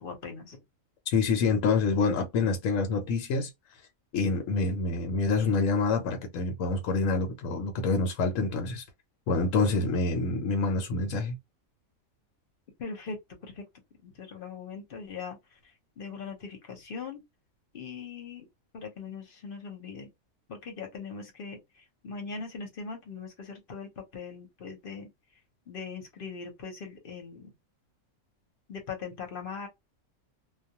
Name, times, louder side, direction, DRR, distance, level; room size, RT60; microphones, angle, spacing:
voice 1, 0.0-0.6 12.8-13.2 13.4-13.6 14.0-15.4 16.0-17.2 17.7-18.5 18.7-20.1 20.5-21.6 22.0-25.1 25.7-27.5 28.7-29.7, left 5 dB, 50° left, 0.9 m, -40 dB
voice 2, 1.1-3.5 4.1-8.8 9.3-11.4, left 3 dB, 75° left, 1.0 m, -27 dB
2.3 x 2.2 x 2.8 m
omnidirectional pair, 1.4 m